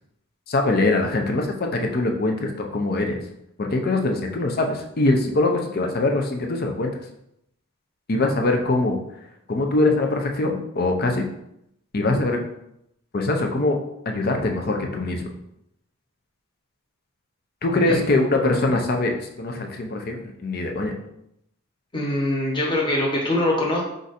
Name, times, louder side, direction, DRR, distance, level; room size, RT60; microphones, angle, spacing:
voice 1, 0.5-3.2 3.6-6.9 8.1-9.0 9.5-11.2 11.9-12.4 13.1-13.8 14.1-15.2 17.6-20.9, left 2 dB, 45° left, 3 dB, 0.6 m, -22 dB
voice 2, 21.9-23.8, left 1 dB, 20° left, -2 dB, 1.0 m, -23 dB
4.6 x 2.6 x 4.1 m, 0.78 s
head